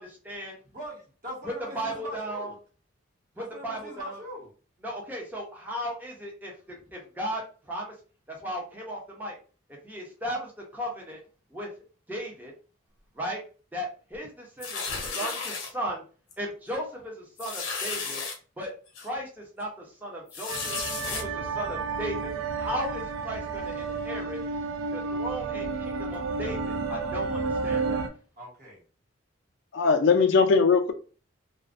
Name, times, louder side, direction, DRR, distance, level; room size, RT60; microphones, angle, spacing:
voice 1, 0.0-0.6 1.4-2.5 3.4-4.2 4.8-7.4 7.7-7.9 8.3-9.3 9.8-11.2 11.5-11.7 12.1-12.5 13.1-13.4 13.7-16.0 16.4-18.2 18.6-18.7 19.0-20.8 21.1-24.4 24.9-28.1, equal, 10° right, -2 dB, 0.6 m, -36 dB
voice 2, 0.7-2.5 3.4-4.5 28.4-28.8, equal, 45° right, -3 dB, 1.1 m, -41 dB
sound 1, 14.6-15.7 16.3-16.5 16.7-16.8 17.4-18.4 19.0-19.1 20.3-21.2, left 4 dB, 85° left, 0.7 m, -33 dB
sound 2, 20.5-28.1, right 4 dB, 75° right, 0.4 m, -31 dB
voice 3, 29.7-30.9, left 5 dB, 65° left, 6 dB, 0.3 m, -20 dB
2.3 x 2.1 x 2.4 m, 0.37 s
head